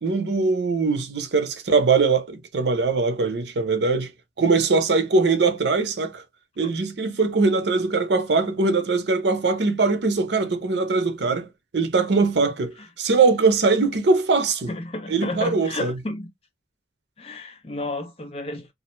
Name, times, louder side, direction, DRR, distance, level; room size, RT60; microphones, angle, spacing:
voice 1, 0.0-4.1 4.4-6.2 6.6-11.5 11.7-14.7 15.1-15.9, right 4 dB, 75° right, 0.6 m, -21 dB
voice 2, 14.7-16.3 17.2-18.7, left 2 dB, 35° left, 0.5 m, -31 dB
2.5 x 2.0 x 2.9 m
head